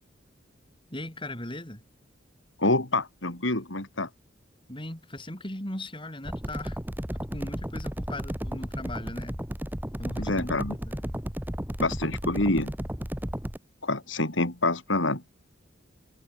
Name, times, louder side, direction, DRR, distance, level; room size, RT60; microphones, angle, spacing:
voice 1, 0.9-1.8 4.7-6.8 7.1-9.4 10.0-11.1, left 1 dB, 25° left, 6.3 m, -38 dB
voice 2, 2.6-4.1 10.2-10.7 11.8-12.7 13.8-15.2, left 2 dB, 85° left, 4.8 m, -27 dB
sound 1, 6.2-13.6, equal, 10° right, 2.5 m, -34 dB
head